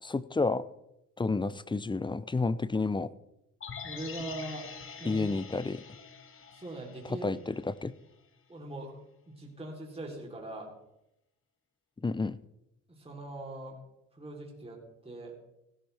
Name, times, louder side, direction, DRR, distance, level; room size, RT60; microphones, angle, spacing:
voice 1, 0.0-0.7 1.2-3.1 5.0-5.8 7.0-7.9 12.0-12.4, left 3 dB, 15° left, 17 dB, 0.6 m, -30 dB
sound 1, 3.6-7.8 8.1-8.2, left 6 dB, 45° left, 1.8 m, -45 dB
voice 2, 3.8-4.7 5.0-5.3 6.5-7.3 8.5-9.0 9.3-10.7 12.9-13.8 14.1-15.3, right 1 dB, 20° right, -1 dB, 3.6 m, -41 dB
16.0 x 13.5 x 3.5 m, 0.84 s
cardioid pair, 90°, 30 cm